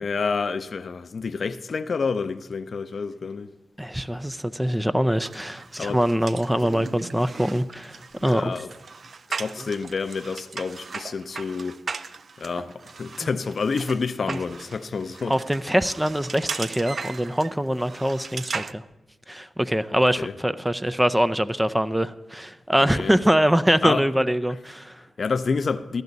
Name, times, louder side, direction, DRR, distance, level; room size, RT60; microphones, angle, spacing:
voice 1, 0.0-3.5 5.8-6.0 8.2-8.7 9.3-11.8 12.4-15.3 20.2-20.3 22.8-23.1 23.8-24.0 25.2-26.0, left 5 dB, 60° left, 0.5 m, -28 dB
voice 2, 3.8-8.5 13.2-13.3 14.3-14.4 15.3-18.8 19.3-25.0, equal, 10° right, 0.5 m, -23 dB
sound 1, 5.2-18.7, right 4 dB, 60° right, 0.4 m, -37 dB
15.0 x 10.5 x 4.0 m
supercardioid pair, 45°, 0 cm